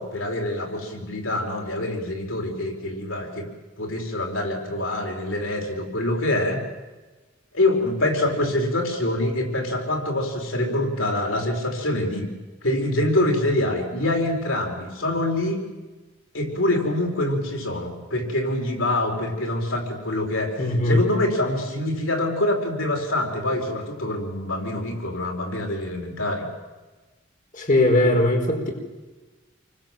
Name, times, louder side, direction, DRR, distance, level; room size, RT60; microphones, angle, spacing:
voice 1, 0.0-3.5 3.8-6.6 7.5-12.3 12.6-15.7 16.3-20.6 20.8-26.4, left 1 dB, 80° left, 2 dB, 5.0 m, -25 dB
voice 2, 20.6-21.0 27.5-28.7, left 1 dB, 40° left, 2 dB, 4.5 m, -19 dB
28.5 x 24.0 x 7.8 m, 1.2 s
head